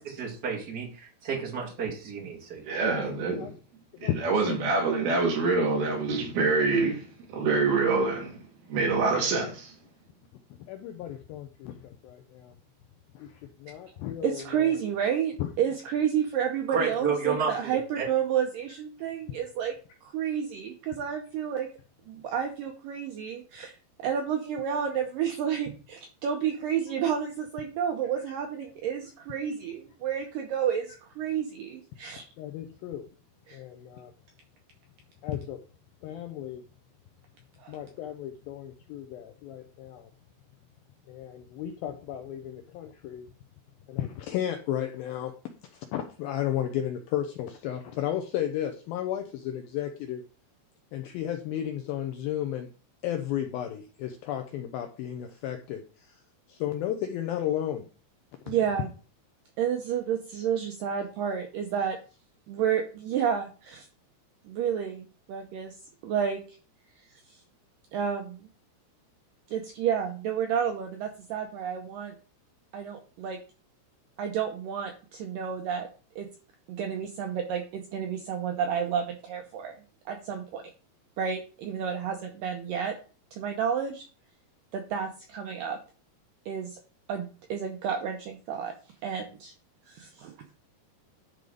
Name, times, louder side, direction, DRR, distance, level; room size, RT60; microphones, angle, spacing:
voice 1, 0.0-3.0 16.7-17.5 18.0-18.1, right 5 dB, 40° right, 1.4 m, -31 dB
voice 2, 2.7-3.5 4.0-7.0 7.3-8.4 8.7-9.7, right 3 dB, 65° right, 3.8 m, -25 dB
voice 3, 4.0-4.6 10.7-12.6 13.2-14.8 15.4-15.5 32.4-33.1 33.5-34.1 35.2-35.6 36.0-36.6 37.7-40.1 41.1-43.3 43.9-45.3 45.6-50.2 50.9-52.7 53.0-56.2 56.5-57.9 58.5-58.6, left 11 dB, 90° left, 2.1 m, -33 dB
voice 4, 14.2-19.8 20.0-21.7 22.1-32.3 33.5-33.6 37.6-37.8 58.5-58.9 59.6-62.0 62.5-63.9 64.4-65.8 66.0-66.6 67.0-67.4 67.9-68.5 69.5-72.1 72.7-73.4 74.2-75.9 76.2-76.3 76.7-79.8 80.1-80.6 81.2-83.0 83.3-84.1 84.7-85.8 86.5-86.8 87.1-88.8 89.0-89.5 89.9-90.4, right 8 dB, 90° right, 1.9 m, -30 dB
10.5 x 3.9 x 4.9 m
omnidirectional pair, 5.0 m